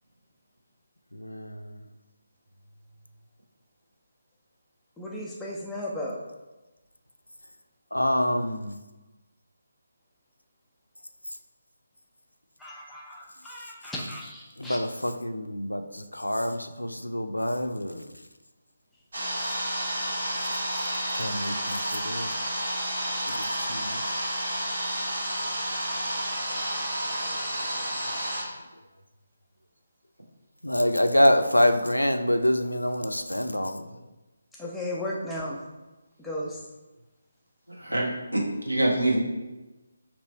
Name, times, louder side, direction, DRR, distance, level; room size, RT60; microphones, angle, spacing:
voice 1, 1.1-1.8 7.9-8.7 14.6-18.1 21.1-22.3 23.3-24.0 30.6-33.9, left 1 dB, 85° left, 7 dB, 0.4 m, -26 dB
voice 2, 5.0-6.2 12.6-14.8 34.5-35.6 36.2-36.6, left 1 dB, 5° left, -5 dB, 0.5 m, -35 dB
sound 1, 19.1-28.4, right 1 dB, 65° right, 1.4 m, -30 dB
voice 3, 37.8-39.2, right 1 dB, 85° right, -3 dB, 1.1 m, -25 dB
3.2 x 2.9 x 4.2 m, 1.1 s
figure-of-eight pair, 150°, 0 cm